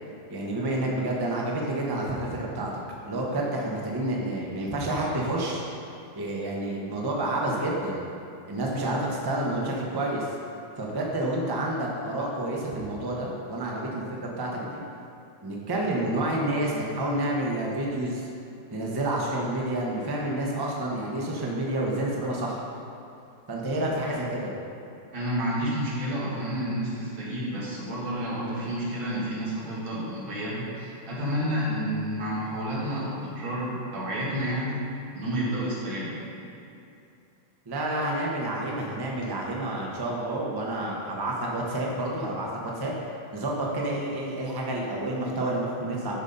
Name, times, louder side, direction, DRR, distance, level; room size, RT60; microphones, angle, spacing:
voice 1, 0.3-2.7 3.0-5.6 6.1-8.0 8.5-10.3 10.8-14.8 15.4-18.3 18.7-22.6 23.5-24.5 37.7-42.9 43.3-46.2, right 1 dB, 20° right, -3 dB, 0.6 m, -29 dB
voice 2, 25.1-34.8 35.1-36.2, equal, 85° right, -6 dB, 2.6 m, -30 dB
10.5 x 4.1 x 5.3 m, 2.6 s
omnidirectional pair, 2.1 m